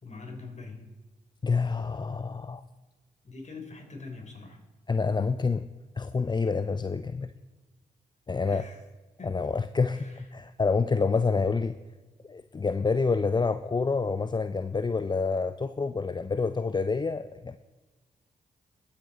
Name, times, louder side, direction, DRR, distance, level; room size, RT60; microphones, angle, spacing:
voice 1, 0.0-0.9 3.2-4.6 8.4-8.8 9.2-9.4 9.9-10.3, left 3 dB, 40° left, 3 dB, 3.4 m, -43 dB
voice 2, 1.4-2.6 4.9-5.7 6.0-7.3 8.3-8.7 9.2-11.7 12.3-17.6, left 4 dB, 25° left, 12 dB, 0.5 m, -27 dB
21.0 x 8.5 x 4.0 m, 1.2 s
hypercardioid pair, 40°, 18 cm